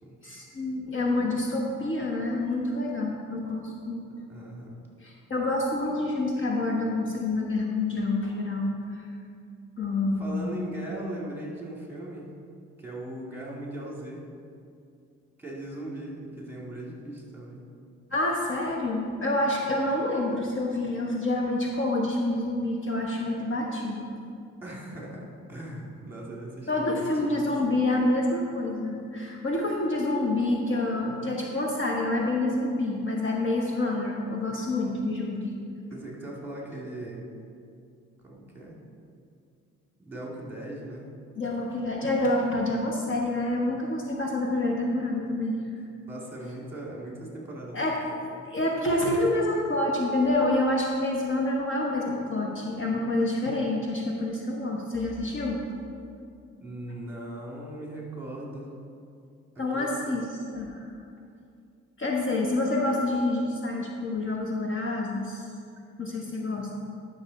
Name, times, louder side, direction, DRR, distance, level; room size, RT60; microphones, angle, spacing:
voice 1, 0.2-4.0 5.0-9.1 9.8-10.6 18.1-24.1 26.7-35.5 41.3-45.6 47.7-48.0 48.4-55.6 59.6-60.9 62.0-65.5 66.0-66.7, left 2 dB, 40° left, -1 dB, 1.2 m, -27 dB
voice 2, 4.1-4.8 10.1-12.3 12.8-14.2 15.4-17.6 24.6-27.5 35.9-37.3 38.2-38.8 40.0-41.1 46.1-48.1 52.8-53.1 56.6-58.7 59.5-60.0 66.6-66.7, right 1 dB, 5° right, -3 dB, 2.6 m, -39 dB
11.5 x 6.6 x 4.2 m, 2.4 s
cardioid pair, 90°, 30 cm